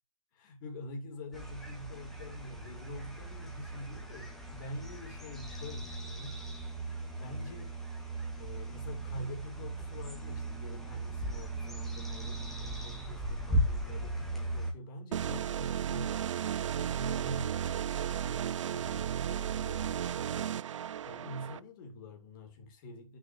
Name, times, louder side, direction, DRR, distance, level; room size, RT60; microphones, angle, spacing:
voice 1, 0.3-7.8 8.4-16.2 16.7-17.8 18.1-20.2 21.0-23.2, left 1 dB, 40° left, 2.9 m, -46 dB
sound 1, 1.3-14.7, right 1 dB, ahead, 1.7 m, -37 dB
sound 2, 15.1-21.6, right 9 dB, 60° right, 0.5 m, -34 dB
9.5 x 6.5 x 3.2 m
hypercardioid pair, 145°, 18 cm